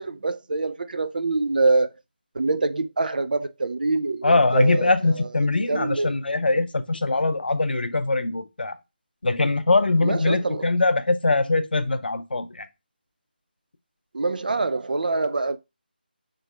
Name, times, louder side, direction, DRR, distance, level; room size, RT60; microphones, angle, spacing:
voice 1, 0.0-1.9 2.3-5.3 5.7-6.1 10.0-10.6 14.1-15.6, right 3 dB, 55° right, 0.4 m, -25 dB
voice 2, 4.2-8.8 9.2-12.7, left 2 dB, 65° left, 0.6 m, -22 dB
3.4 x 3.1 x 4.1 m
figure-of-eight pair, 160°, 6 cm